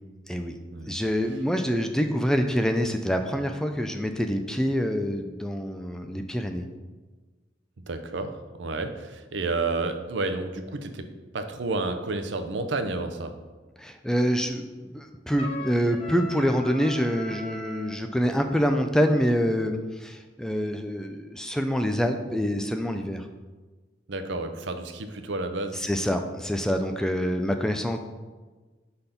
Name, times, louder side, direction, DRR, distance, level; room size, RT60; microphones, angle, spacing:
voice 1, 0.9-6.6 13.8-23.2 25.7-28.0, equal, 5° left, 6 dB, 0.3 m, -26 dB
voice 2, 7.9-8.3 8.6-11.1 11.3-13.3 24.1-25.8, right 3 dB, 70° right, 7 dB, 0.6 m, -30 dB
Trumpet, 15.4-17.9, left 1 dB, 30° left, 0.9 m, -39 dB
5.1 x 4.2 x 5.7 m, 1.3 s
head